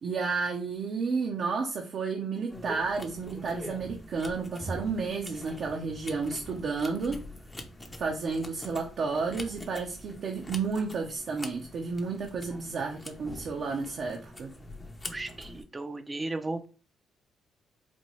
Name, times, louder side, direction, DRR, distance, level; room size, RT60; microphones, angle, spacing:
voice 1, 0.0-7.2 8.0-14.5, right 4 dB, 60° right, 0 dB, 0.7 m, -32 dB
sound 1, 2.5-15.6, left 1 dB, 15° left, 0.7 m, -44 dB
voice 2, 15.1-16.7, right 2 dB, 25° right, 8 dB, 0.5 m, -35 dB
4.3 x 2.3 x 3.0 m, 0.35 s
cardioid pair, 90°, 0 cm